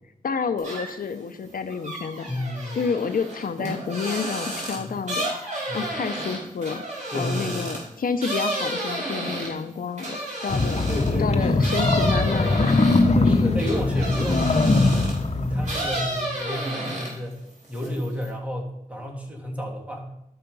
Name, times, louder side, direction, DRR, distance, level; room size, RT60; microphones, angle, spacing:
voice 1, 0.2-2.3 2.8-5.3 5.7-6.8 7.1-10.8 11.2-13.4, left 5 dB, 75° left, 10 dB, 0.6 m, -29 dB
sound 1, 0.6-1.1 1.5-11.2 11.6-15.2 15.6-17.3 17.6-18.3, right 1 dB, 50° right, 4.7 m, -31 dB
voice 2, 2.3-2.8 4.8-4.9 5.7-5.9 7.1-7.8 10.9-11.7 13.1-15.1 15.3-17.4 17.7-20.1, left 1 dB, 10° right, -1 dB, 3.0 m, -30 dB
sound 2, 10.5-16.2, left 3 dB, 45° left, 1.2 m, -21 dB
12.5 x 5.6 x 5.4 m, 0.84 s
cardioid pair, 55°, 15 cm